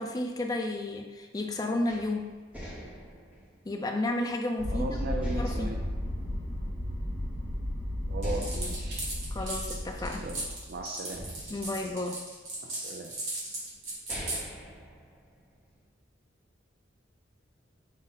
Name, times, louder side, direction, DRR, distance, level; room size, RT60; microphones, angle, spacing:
voice 1, 0.0-2.4 3.6-5.8 9.3-10.3 11.5-12.3, left 2 dB, 20° left, 3 dB, 0.4 m, -32 dB
sound 1, 1.9-4.7 5.2-7.1 7.5-7.6 8.2-10.6 11.1-12.7 13.4-13.5 13.9-15.7, equal, 10° right, 0.8 m, -43 dB
sound 2, 4.6-10.8, left 1 dB, 75° right, 1.1 m, -34 dB
voice 2, 4.7-5.8 8.1-9.0 10.2-11.2 12.6-13.2, right 2 dB, 50° right, 1 dB, 0.4 m, -38 dB
sound 3, 8.2-14.4, right 2 dB, 90° right, 1.5 m, -37 dB
5.4 x 2.1 x 3.9 m, 1.2 s
head